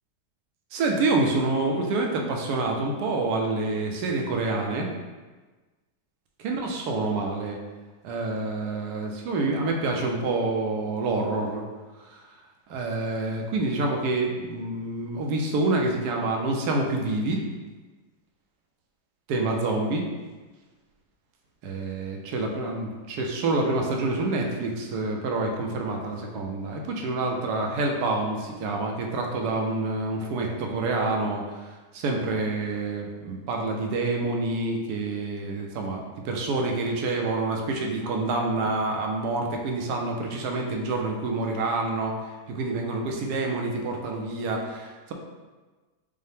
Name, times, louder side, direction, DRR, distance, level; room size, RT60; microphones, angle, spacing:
voice 1, 0.7-4.9 6.4-7.6 8.0-11.6 12.1-12.2 12.7-17.4 19.3-20.1 21.6-31.6 31.9-42.1 42.5-45.1, right 2 dB, 75° right, 1 dB, 1.1 m, -27 dB
5.4 x 2.1 x 3.4 m, 1.3 s
omnidirectional pair, 1.8 m